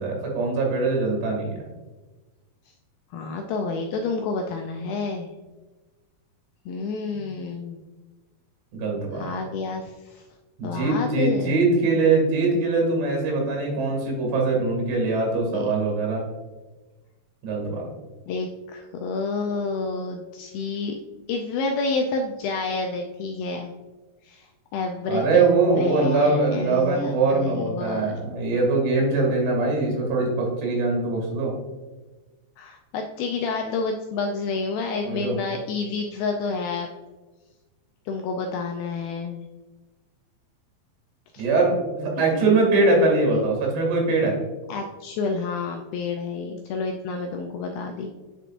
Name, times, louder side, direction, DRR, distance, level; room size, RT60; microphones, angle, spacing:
voice 1, 0.0-1.5 8.7-9.3 10.6-16.2 17.4-17.9 25.1-31.5 35.0-35.4 41.4-44.4, right 3 dB, 85° right, -1 dB, 4.4 m, -22 dB
voice 2, 3.1-5.3 6.7-7.8 9.1-10.2 10.6-11.6 15.5-16.0 18.3-21.0 21.3-23.7 24.2-24.5 24.7-25.5 25.8-28.2 32.6-36.9 38.1-39.4 41.3-41.4 42.3-42.4 42.9-43.1 43.3-43.4 44.7-48.1, left 4 dB, 85° left, 3 dB, 2.1 m, -29 dB
9.7 x 5.2 x 2.5 m, 1.2 s
omnidirectional pair, 4.7 m